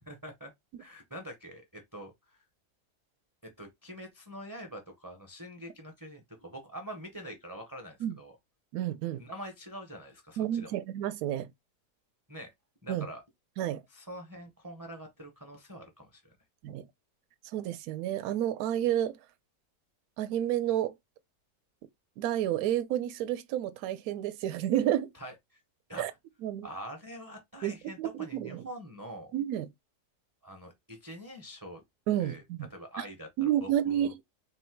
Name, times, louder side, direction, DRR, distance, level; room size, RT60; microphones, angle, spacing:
voice 1, 0.1-0.5 0.8-2.4 3.4-8.4 9.2-10.8 12.3-12.5 12.8-13.2 13.9-16.4 25.1-25.6 25.9-26.1 26.6-29.3 30.4-31.8 32.2-32.4 32.7-34.1, equal, 20° right, 0.5 m, -45 dB
voice 2, 8.7-9.2 10.4-11.5 12.9-13.1 13.6-13.8 16.6-16.9 17.5-19.1 20.2-20.9 22.2-25.1 26.0-26.1 26.4-26.7 27.6-27.7 28.0-28.6 29.3-29.7 32.1-32.6 33.4-34.2, right 11 dB, 70° right, 1.0 m, -30 dB
4.1 x 2.1 x 4.4 m
omnidirectional pair, 1.7 m